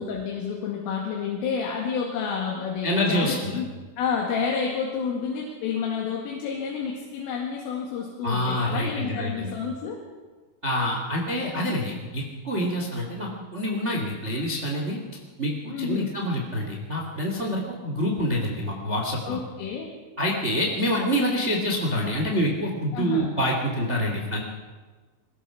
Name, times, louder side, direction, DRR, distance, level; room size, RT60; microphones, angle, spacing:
voice 1, 0.0-3.7 4.0-10.0 15.7-16.1 19.3-19.9 22.9-23.3, left 6 dB, 85° left, -1 dB, 4.7 m, -29 dB
voice 2, 2.8-3.6 8.2-9.5 10.6-15.0 15.4-19.4 20.2-24.4, equal, 50° right, 0 dB, 0.8 m, -26 dB
22.5 x 19.5 x 5.8 m, 1.4 s
omnidirectional pair, 5.7 m